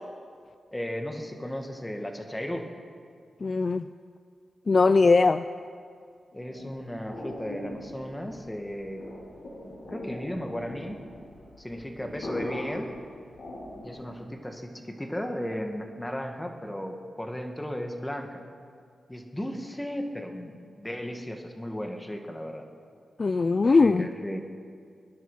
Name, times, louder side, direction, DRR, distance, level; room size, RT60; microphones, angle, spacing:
voice 1, 0.7-2.7 6.3-9.0 9.6-11.0 11.6-13.0 13.8-18.4 19.1-22.7 23.6-24.4, equal, 10° left, 4 dB, 2.0 m, -35 dB
voice 2, 3.4-3.8 4.7-5.4 23.2-24.1, left 4 dB, 45° left, 11 dB, 0.4 m, -20 dB
sound 1, 6.3-14.1, left 1 dB, 75° left, 4.9 m, -40 dB
23.5 x 10.5 x 5.8 m, 2.2 s
cardioid pair, 70°, 0 cm